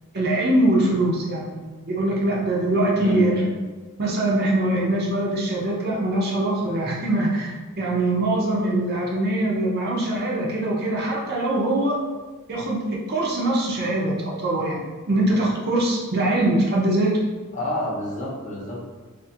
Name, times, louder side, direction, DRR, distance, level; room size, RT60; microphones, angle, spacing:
voice 1, 0.1-3.4 4.0-12.0 12.5-17.2, right 1 dB, 50° right, -3 dB, 0.6 m, -23 dB
voice 2, 3.0-3.5 17.5-18.8, left 1 dB, 35° left, -5 dB, 0.7 m, -29 dB
2.5 x 2.5 x 2.7 m, 1.3 s
head